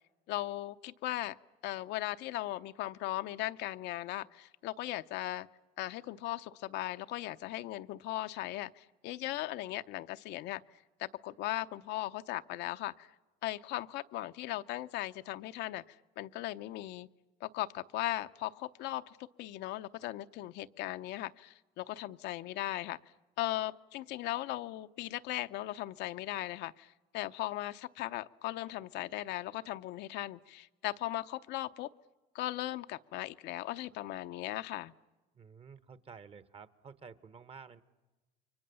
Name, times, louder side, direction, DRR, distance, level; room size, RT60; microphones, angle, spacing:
voice 1, 0.3-1.4 1.6-5.5 5.8-10.6 11.0-13.1 13.4-17.1 17.4-23.0 23.4-31.9 32.3-34.9, left 15 dB, 70° left, 10 dB, 0.7 m, -38 dB
voice 2, 35.3-37.8, right 6 dB, 35° right, 15 dB, 1.2 m, -52 dB
29.5 x 24.0 x 6.9 m, 1.2 s
cardioid pair, 110°, 18 cm